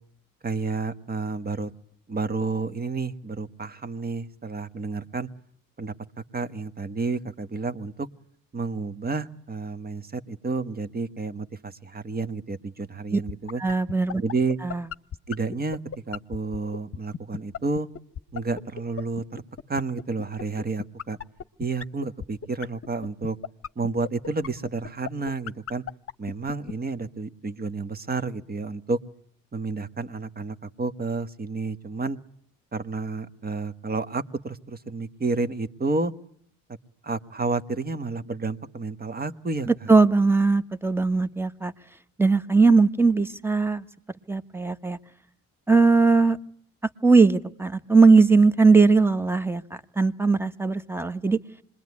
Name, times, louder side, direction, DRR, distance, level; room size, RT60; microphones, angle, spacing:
voice 1, 0.4-1.7 2.1-5.3 5.8-5.9 6.3-8.1 8.5-13.6 14.2-14.6 15.3-15.8 16.1-17.9 18.3-19.4 19.7-21.2 21.6-23.4 23.7-25.8 26.2-29.0 29.5-32.2 32.7-36.1 37.0-39.9, right 3 dB, 25° right, 12 dB, 1.4 m, -30 dB
sound 1, 13.3-26.7, left 8 dB, 40° left, 1.1 m, -34 dB
voice 2, 13.6-14.2 14.6-14.8 39.7-41.7 42.2-43.8 44.3-45.0 45.7-46.4 47.0-49.6 50.0-51.4, right 4 dB, 5° right, 13 dB, 1.2 m, -19 dB
26.5 x 22.0 x 9.7 m, 0.65 s
cardioid pair, 95°, 35 cm